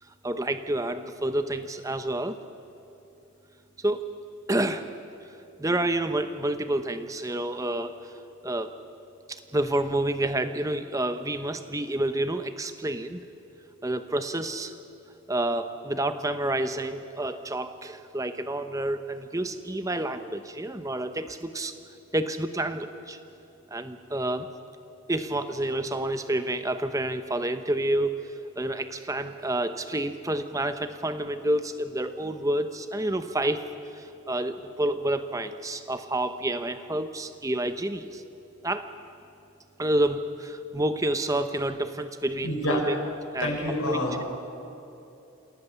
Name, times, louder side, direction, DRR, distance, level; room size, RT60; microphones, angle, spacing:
voice 1, 0.2-2.4 3.8-4.0 4.5-4.9 5.6-8.2 8.4-8.7 9.3-13.2 13.8-14.8 15.3-21.8 22.1-23.2 23.7-24.5 25.1-33.6 33.9-38.2 38.6-38.9 39.8-42.9 43.3-43.6 43.9-44.0, right 1 dB, 15° right, 9 dB, 0.8 m, -29 dB
voice 2, 42.4-42.8 43.4-44.3, left 1 dB, 85° left, -2 dB, 5.6 m, -27 dB
27.5 x 17.0 x 6.9 m, 2.8 s
head